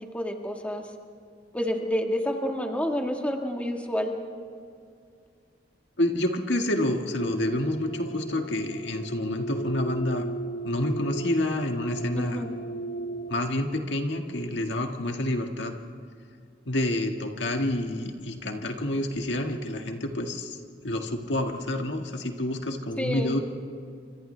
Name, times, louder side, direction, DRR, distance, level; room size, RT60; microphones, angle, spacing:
voice 1, 0.1-0.8 1.5-4.2 12.1-12.5 23.0-23.4, equal, 10° left, 2 dB, 1.6 m, -29 dB
voice 2, 6.0-10.3 10.6-12.4 13.3-15.8 16.7-20.6 20.8-23.4, left 1 dB, 75° left, 3 dB, 1.8 m, -28 dB
sound 1, 7.1-13.5, right 2 dB, 55° left, 1.0 m, -35 dB
29.5 x 26.5 x 3.4 m, 2.3 s
head